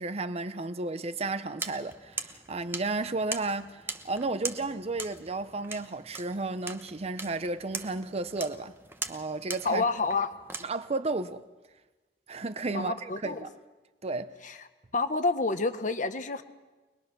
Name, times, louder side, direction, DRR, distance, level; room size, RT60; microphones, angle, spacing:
voice 1, 0.0-8.7 9.1-9.8 10.6-11.4 12.3-13.5 14.0-14.4, right 3 dB, 35° right, 0.7 m, -33 dB
sound 1, 1.6-10.7, right 3 dB, 15° right, 1.1 m, -41 dB
voice 2, 9.6-10.3 12.7-13.4 14.4-14.5 14.9-16.4, left 3 dB, 45° left, 1.3 m, -28 dB
24.0 x 21.0 x 6.1 m
head